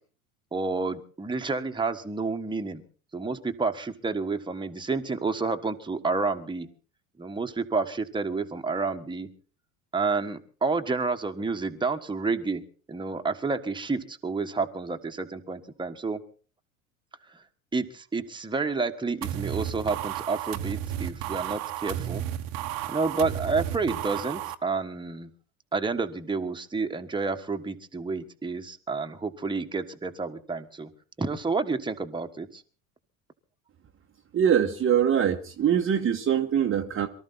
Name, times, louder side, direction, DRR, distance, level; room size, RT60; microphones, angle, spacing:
voice 1, 0.5-2.8 3.1-6.7 7.2-9.3 9.9-12.6 12.9-16.2 17.7-22.2 22.9-25.3 25.7-30.9 31.2-32.6, right 4 dB, 10° right, 1.5 m, -29 dB
sound 1, 19.2-24.6, right 11 dB, 55° right, 1.2 m, -33 dB
voice 2, 34.3-37.1, right 9 dB, 30° right, 1.2 m, -23 dB
23.0 x 13.5 x 4.2 m
hypercardioid pair, 80°, 41 cm